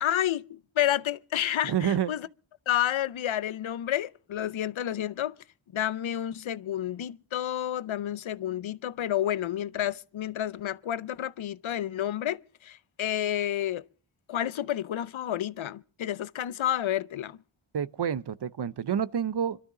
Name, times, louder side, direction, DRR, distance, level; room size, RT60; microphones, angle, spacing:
voice 1, 0.0-2.3 2.7-5.3 5.7-13.8 14.3-17.4, left 11 dB, 70° left, 0.7 m, -30 dB
voice 2, 1.6-2.1 17.7-19.6, right 8 dB, 55° right, 0.7 m, -28 dB
25.5 x 12.5 x 3.8 m
wide cardioid pair, 65°, 48 cm